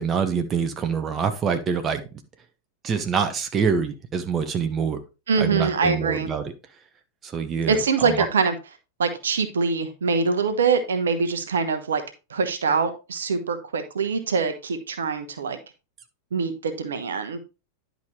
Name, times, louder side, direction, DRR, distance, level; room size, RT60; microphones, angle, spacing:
voice 1, 0.0-2.0 2.8-5.0 5.4-6.4 7.2-8.3, right 6 dB, 25° right, 0.9 m, -25 dB
voice 2, 5.3-6.3 7.7-8.5 9.0-12.0 12.3-15.6 16.3-17.4, right 5 dB, 65° right, 1.0 m, -24 dB
10.5 x 5.1 x 3.1 m
figure-of-eight pair, 90°, 0 cm